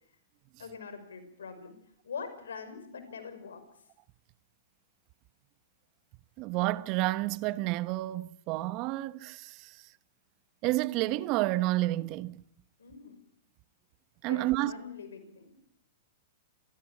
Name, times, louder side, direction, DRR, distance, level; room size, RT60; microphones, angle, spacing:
voice 1, 0.6-1.7 2.0-3.6 12.8-13.2 14.3-15.6, left 5 dB, 80° left, 5.8 m, -43 dB
voice 2, 6.4-9.8 10.6-12.4 14.2-14.7, right 18 dB, 45° right, 1.1 m, -30 dB
27.5 x 17.5 x 8.6 m
hypercardioid pair, 110°, 0 cm